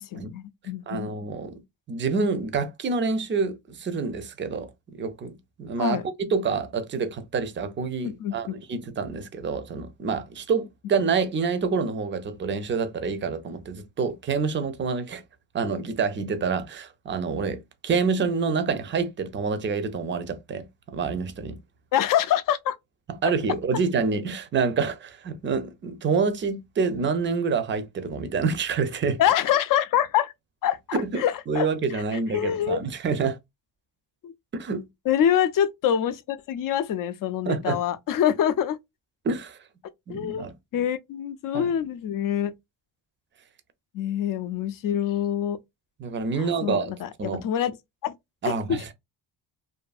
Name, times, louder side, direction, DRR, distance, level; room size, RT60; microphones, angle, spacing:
voice 1, 0.0-1.1 5.8-6.0 8.0-8.5 21.9-22.8 29.2-30.3 30.6-31.7 31.9-32.0 32.3-32.8 34.2-34.3 35.1-38.8 40.1-40.5 40.7-42.5 43.9-45.6 46.3-47.7 48.0-48.1 48.4-48.8, left 10 dB, 50° left, 0.5 m, -25 dB
voice 2, 0.9-1.6 1.9-6.0 6.3-15.2 15.5-21.6 23.2-29.2 30.9-33.4 34.5-34.9 37.5-37.8 39.2-39.6 40.1-40.5 41.5-41.7 46.0-47.4 48.4-48.9, right 5 dB, 25° right, 0.5 m, -27 dB
2.6 x 2.6 x 2.3 m
cardioid pair, 90°, 44 cm